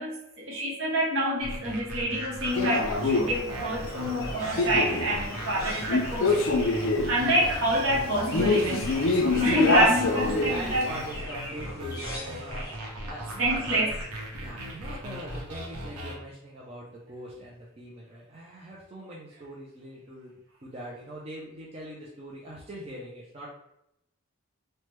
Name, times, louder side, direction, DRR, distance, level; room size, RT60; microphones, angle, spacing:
voice 1, 0.0-6.3 6.6-6.7 7.1-10.9 13.4-13.9, equal, 60° right, -4 dB, 0.9 m, -27 dB
sound 1, 1.4-16.2, equal, 90° right, 0.7 m, -38 dB
Male speech man speaking, 2.5-11.1, left 2 dB, 60° left, 0.4 m, -27 dB
Chirp tweet, 3.8-12.8, equal, 15° left, 0.8 m, -44 dB
voice 2, 8.7-13.9 14.3-20.4 20.6-23.5, right 1 dB, 25° right, -5 dB, 0.4 m, -42 dB
3.2 x 2.1 x 3.0 m, 0.80 s
head